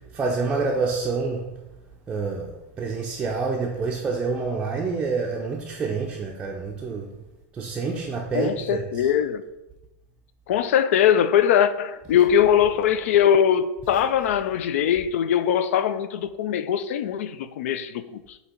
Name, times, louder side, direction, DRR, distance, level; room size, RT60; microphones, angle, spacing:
voice 1, 0.1-1.5 2.1-7.1 7.5-9.1, right 4 dB, 15° right, 0.5 m, -27 dB
voice 2, 8.3-9.4 10.5-18.2, left 9 dB, 75° left, 0.4 m, -21 dB
7.8 x 2.8 x 4.4 m
supercardioid pair, 160°, 8 cm